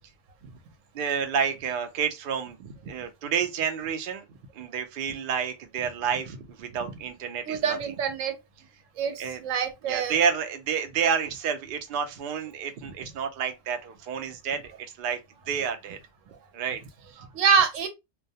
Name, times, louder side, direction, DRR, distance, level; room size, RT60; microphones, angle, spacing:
voice 1, 0.9-4.2 4.5-7.8 9.2-9.4 9.8-14.7 15.0-15.2 15.5-16.0 16.5-17.2, right 7 dB, 60° right, 0.6 m, -29 dB
voice 2, 7.5-8.3 9.0-10.1 17.3-17.9, right 6 dB, 80° right, 1.0 m, -25 dB
2.3 x 2.1 x 2.7 m
omnidirectional pair, 1.3 m